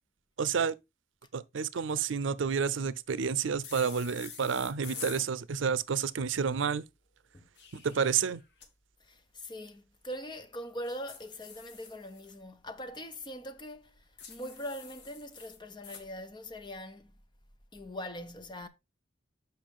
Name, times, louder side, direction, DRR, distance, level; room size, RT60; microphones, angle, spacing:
voice 1, 0.4-0.7 1.3-6.8 7.7-8.4, right 6 dB, 85° right, 0.5 m, -30 dB
sound 1, 3.6-5.3 7.3-8.7 10.8-12.4 14.2-16.1, left 6 dB, 60° left, 1.3 m, -47 dB
voice 2, 9.0-17.1 17.7-18.7, equal, 25° left, 0.7 m, -42 dB
7.1 x 5.5 x 3.6 m
head